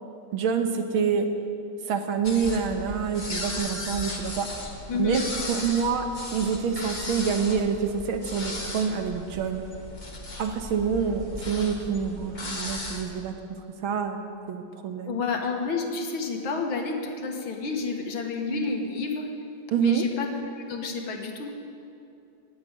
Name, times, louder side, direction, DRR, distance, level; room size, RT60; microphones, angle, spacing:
voice 1, 0.3-1.3 1.9-4.6 5.0-9.6 10.4-13.3 13.8-15.2 19.7-20.1, right 6 dB, 75° right, 6 dB, 1.9 m, -27 dB
sound 1, 2.2-13.0, left 2 dB, 25° left, 1.6 m, -36 dB
voice 2, 4.9-5.3 15.1-19.3 19.8-21.5, left 4 dB, 70° left, 3 dB, 2.3 m, -30 dB
18.0 x 7.9 x 9.9 m, 2.7 s
omnidirectional pair, 2.3 m